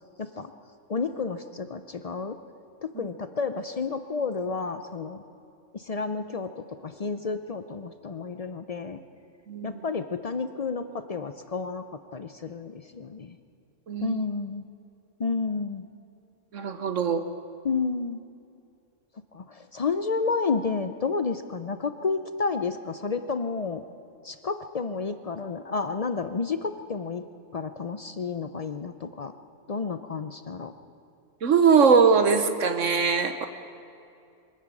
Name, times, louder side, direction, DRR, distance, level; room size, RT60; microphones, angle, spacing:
voice 1, 0.2-0.5 0.9-2.4 2.8-5.2 5.7-9.0 9.6-13.4 14.0-14.6 15.2-15.9 17.6-18.2 19.3-23.8 24.2-27.2 27.5-29.3 29.7-30.7, left 4 dB, 75° left, 10 dB, 0.3 m, -31 dB
voice 2, 9.5-9.8 13.9-14.3 16.5-17.2 31.4-33.4, right 5 dB, 60° right, 8 dB, 1.2 m, -21 dB
23.5 x 13.0 x 8.9 m, 2.5 s
omnidirectional pair, 1.5 m